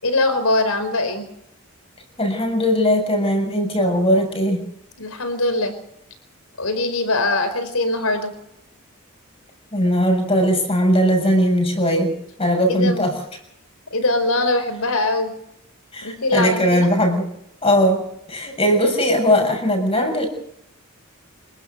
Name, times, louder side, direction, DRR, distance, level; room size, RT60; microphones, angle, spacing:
voice 1, 0.0-1.3 5.0-5.8 6.6-8.3 12.7-13.1 13.9-15.3 16.0-16.9, left 2 dB, 75° left, 10 dB, 4.6 m, -22 dB
voice 2, 2.2-4.6 9.7-13.2 15.9-17.3 17.6-18.0 18.3-20.3, equal, 25° left, 4 dB, 7.0 m, -19 dB
27.0 x 12.5 x 7.9 m, 0.77 s
head